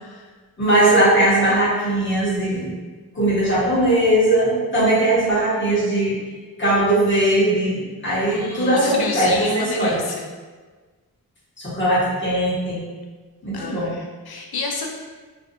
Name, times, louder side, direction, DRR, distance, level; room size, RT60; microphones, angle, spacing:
voice 1, 0.6-2.7 3.1-6.1 6.6-10.0 11.6-12.8 13.4-13.9, right 1 dB, 30° left, -9 dB, 1.0 m, -19 dB
voice 2, 8.2-10.3 13.5-14.9, left 3 dB, 80° left, 1 dB, 0.5 m, -29 dB
2.4 x 2.3 x 2.6 m, 1.4 s
wide cardioid pair, 70°, 37 cm